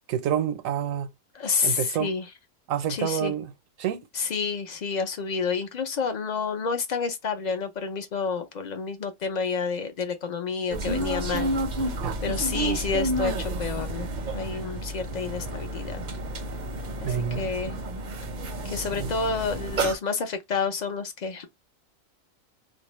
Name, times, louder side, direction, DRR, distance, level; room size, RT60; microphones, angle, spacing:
voice 1, 0.1-1.1 1.6-2.1 2.7-3.5 3.8-4.1 12.0-12.2 17.0-17.5 19.0-19.1, right 9 dB, 85° right, 1.0 m, -28 dB
voice 2, 1.3-2.3 2.9-3.3 4.1-11.5 12.2-16.0 17.0-17.8 18.6-21.5, left 5 dB, 55° left, 0.5 m, -29 dB
sound 1, 10.7-20.0, right 1 dB, 50° right, 0.6 m, -30 dB
2.5 x 2.0 x 2.9 m
omnidirectional pair, 1.4 m